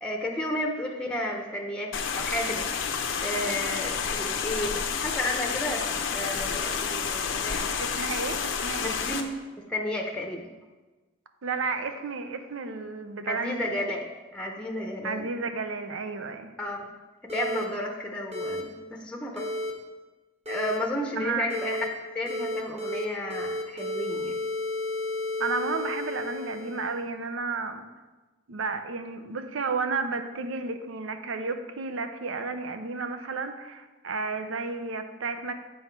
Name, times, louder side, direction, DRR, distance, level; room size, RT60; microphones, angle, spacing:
voice 1, 0.0-2.7 3.2-5.8 6.1-7.7 8.0-8.2 8.8-9.3 9.7-10.5 13.3-15.3 16.6-16.8 17.3-19.5 20.5-21.8 22.1-24.3, left 1 dB, 5° left, 1 dB, 0.7 m, -32 dB
sound 1, 1.9-9.2, left 6 dB, 75° left, 0.7 m, -30 dB
voice 2, 7.8-9.0 11.4-13.9 15.0-16.5 21.2-21.5 25.4-27.9 28.5-35.5, right 4 dB, 90° right, 8 dB, 0.6 m, -32 dB
sound 2, 17.3-17.6 18.3-18.6 19.4-19.7 20.5-20.8 21.5-21.9 22.3-23.0 23.3-27.0, left 1 dB, 35° right, 1.2 m, -32 dB
7.8 x 5.4 x 4.5 m, 1.2 s
head